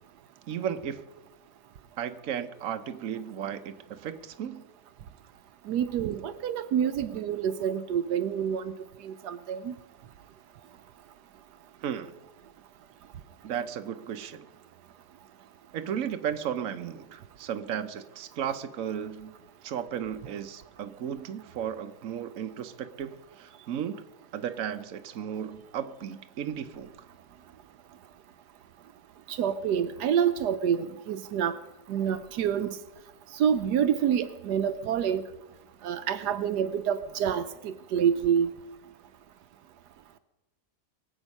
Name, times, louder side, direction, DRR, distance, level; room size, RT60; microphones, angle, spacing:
voice 1, 0.5-1.0 2.0-4.6 11.8-12.2 13.4-14.5 15.7-19.3 19.6-24.0 24.3-26.9, right 8 dB, 60° right, 8 dB, 1.2 m, -34 dB
voice 2, 5.7-8.7 9.0-9.8 29.3-31.5 31.9-32.8 33.3-35.2 35.8-38.5, right 8 dB, 80° right, 12 dB, 1.2 m, -27 dB
22.5 x 8.1 x 5.4 m, 1.0 s
omnidirectional pair, 1.8 m